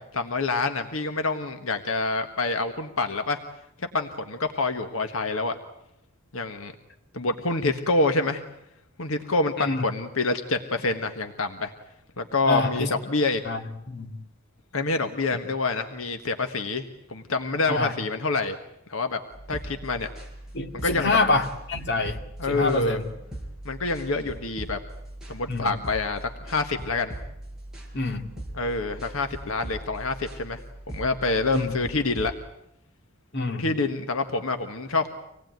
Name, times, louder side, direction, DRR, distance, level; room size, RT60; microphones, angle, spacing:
voice 1, 0.1-3.4 3.9-5.5 6.3-6.7 7.1-8.4 9.0-11.7 12.2-13.4 14.7-18.6 18.9-19.2 19.5-20.1 20.7-21.2 22.4-23.0 23.6-24.8 25.3-27.1 28.5-30.6 30.9-32.3 33.5-35.1, left 3 dB, 80° left, 7 dB, 1.5 m, -27 dB
voice 2, 12.5-12.9 13.5-14.1 17.8-17.9 20.5-22.2 22.5-23.0 25.5-25.7 27.9-28.2 31.5-31.8 33.3-33.6, left 2 dB, 55° left, 4 dB, 2.4 m, -26 dB
sound 1, 19.3-32.3, right 1 dB, 5° right, 5.1 m, -40 dB
26.0 x 18.5 x 9.3 m, 0.83 s
head